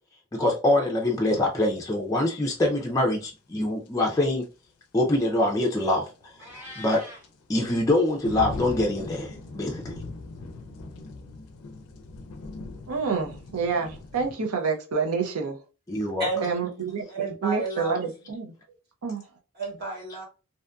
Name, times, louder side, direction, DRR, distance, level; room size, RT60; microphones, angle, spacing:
voice 1, 0.3-4.5 4.9-6.0 6.5-7.0 7.5-9.9 15.9-16.3, left 1 dB, 15° left, 0.3 m, -24 dB
sound 1, 3.9-4.0 4.4-4.5 6.1-14.3, left 3 dB, 85° left, 0.4 m, -40 dB
Meow, 6.4-7.3, left 1 dB, 10° right, 0.9 m, -42 dB
voice 2, 12.9-15.6 16.4-17.0 17.4-18.5 19.0-19.2, right 5 dB, 85° right, 0.6 m, -28 dB
voice 3, 17.1-18.1 19.5-20.2, right 3 dB, 45° right, 1.2 m, -31 dB
2.6 x 2.5 x 2.2 m
head